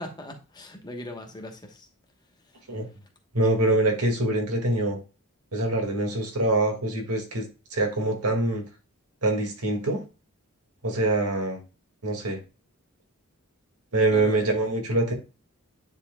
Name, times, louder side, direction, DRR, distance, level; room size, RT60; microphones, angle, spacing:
voice 1, 0.0-1.9 14.1-14.5, left 1 dB, 20° left, 1.0 m, -39 dB
voice 2, 3.3-5.0 5.5-8.6 9.2-10.0 10.8-11.6 12.0-12.4 13.9-15.1, right 2 dB, 90° right, 1.9 m, -24 dB
9.7 x 4.5 x 2.2 m
head